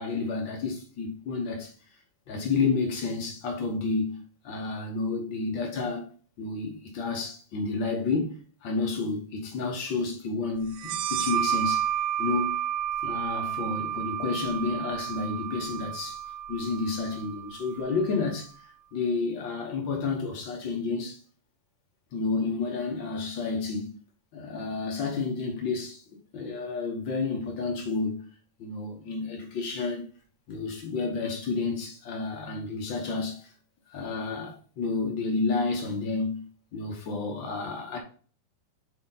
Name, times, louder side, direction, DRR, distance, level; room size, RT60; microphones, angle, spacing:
voice 1, 0.0-1.7 2.3-6.1 6.4-11.9 12.2-12.6 13.0-21.2 22.1-24.0 24.3-26.0 26.3-28.3 28.6-30.1 30.5-33.5 33.9-36.4 36.7-38.0, left 4 dB, 75° left, 1.0 m, -30 dB
sound 1, 10.7-18.1, right 10 dB, 80° right, 2.3 m, -31 dB
8.3 x 3.8 x 4.0 m
omnidirectional pair, 3.9 m